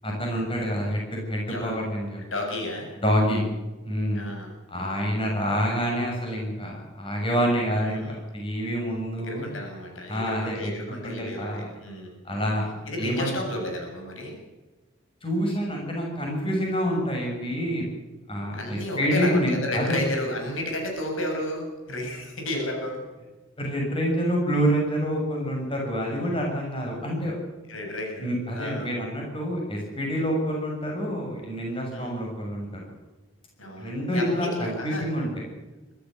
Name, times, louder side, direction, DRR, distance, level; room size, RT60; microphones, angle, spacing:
voice 1, 0.0-2.2 3.0-3.5 3.8-4.3 4.7-9.5 10.1-10.7 11.0-11.7 12.2-12.7 13.0-13.4 15.2-17.8 18.3-20.0 23.6-27.3 28.2-32.8 33.8-35.4, equal, 25° left, 0 dB, 6.8 m, -27 dB
voice 2, 1.5-1.8 2.2-2.9 4.1-4.5 7.7-8.2 9.1-12.2 12.8-14.4 18.5-23.0 27.7-28.3 28.5-28.9 31.9-32.1 33.6-35.0, left 1 dB, 80° left, 2 dB, 7.3 m, -32 dB
24.5 x 13.5 x 7.9 m, 1.2 s
head